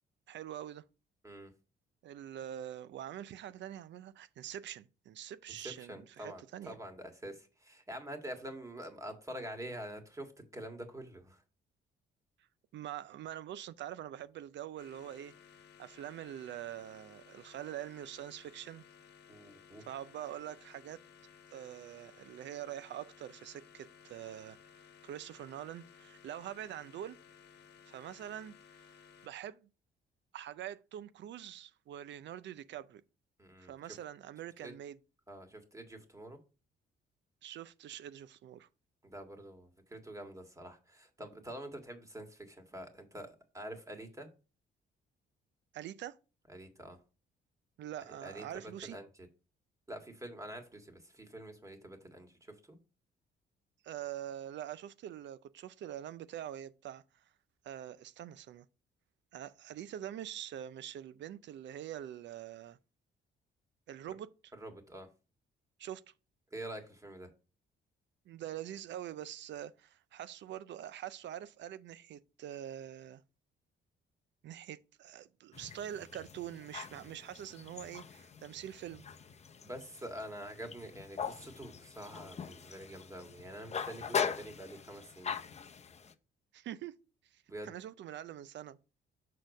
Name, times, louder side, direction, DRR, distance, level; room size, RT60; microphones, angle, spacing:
voice 1, 0.3-0.8 2.0-6.8 12.7-15.3 15.8-18.8 19.9-21.0 21.5-24.6 25.0-27.2 27.9-28.9 29.2-29.7 30.3-33.0 33.6-35.0 37.4-38.7 45.7-46.2 47.8-49.0 53.8-57.2 57.6-58.7 59.3-62.8 63.9-64.3 65.8-66.1 68.3-73.2 74.4-79.0 86.5-86.9 87.3-88.8, right 11 dB, 65° right, 0.5 m, -44 dB
voice 2, 5.6-11.4 19.3-19.8 33.4-33.8 34.6-34.7 35.3-36.4 39.0-44.3 46.5-47.0 48.2-48.4 48.8-49.1 49.9-52.8 64.6-65.1 66.5-67.3 79.6-85.4 87.5-87.7, right 1 dB, 15° right, 1.7 m, -46 dB
sound 1, 14.8-29.3, left 7 dB, 55° left, 1.1 m, -58 dB
sound 2, 75.5-86.1, left 6 dB, 35° left, 0.7 m, -41 dB
6.4 x 4.2 x 5.3 m
cardioid pair, 90°, 20 cm